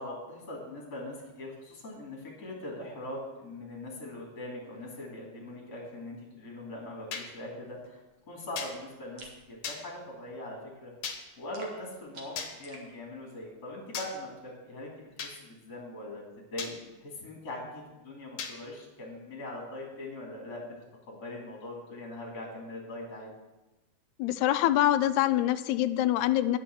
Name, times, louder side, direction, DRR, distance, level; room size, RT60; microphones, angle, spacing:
voice 1, 0.0-8.0 8.3-9.2 9.5-16.2 16.5-20.7 21.1-23.3, left 1 dB, 35° left, -2 dB, 3.0 m, -41 dB
sound 1, 7.1-7.3 8.6-8.7 9.6-9.8 11.0-11.2 12.4-12.5 13.9-14.1 15.2-15.3 16.6-16.7 18.4-18.5, left 6 dB, 65° left, 2.1 m, -36 dB
sound 2, 9.2-9.4 11.5-12.9, right 3 dB, 55° right, 2.3 m, -49 dB
voice 2, 24.2-26.6, left 13 dB, 90° left, 11 dB, 2.0 m, -25 dB
9.8 x 6.4 x 7.6 m, 1.0 s
omnidirectional pair, 3.3 m